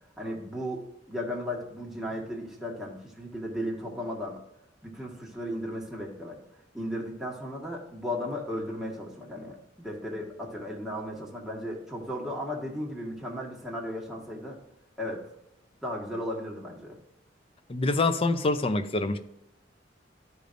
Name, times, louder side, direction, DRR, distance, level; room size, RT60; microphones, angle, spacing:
voice 1, 0.2-4.4 4.8-6.4 6.7-14.6 15.0-15.3 15.8-17.0, equal, ahead, -3 dB, 1.5 m, -35 dB
voice 2, 17.7-19.2, left 2 dB, 30° left, 10 dB, 0.5 m, -25 dB
12.5 x 5.1 x 2.6 m, 0.85 s
head